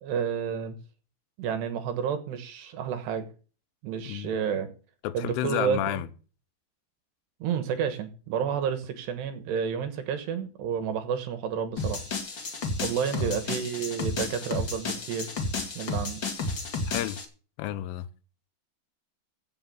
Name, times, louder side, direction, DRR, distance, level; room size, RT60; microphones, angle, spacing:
voice 1, 0.0-0.8 1.4-3.3 3.8-4.7 5.1-6.0 7.4-12.0 12.8-15.3 15.8-16.2, right 7 dB, 70° right, 3.1 m, -30 dB
voice 2, 5.0-6.1 13.1-13.3 16.9-17.2 17.6-18.1, left 14 dB, 85° left, 3.4 m, -31 dB
sound 1, 11.8-17.2, left 3 dB, 45° left, 1.5 m, -32 dB
15.5 x 6.2 x 7.4 m
omnidirectional pair, 5.6 m